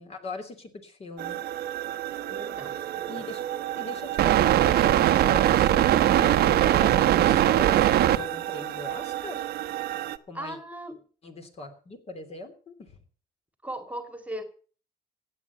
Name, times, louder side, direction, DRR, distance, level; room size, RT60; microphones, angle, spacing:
voice 1, 0.0-1.4 2.7-3.4 3.7-9.4 10.3-10.6 11.2-13.0, left 2 dB, 40° left, 6 dB, 3.1 m, -40 dB
sound 1, 1.2-10.2, right 12 dB, 70° right, 1.0 m, -23 dB
voice 2, 2.3-3.3 10.3-11.0 13.6-14.4, right 1 dB, 10° right, 8 dB, 2.1 m, -38 dB
16.0 x 8.6 x 7.0 m, 0.41 s
cardioid pair, 110°, 17 cm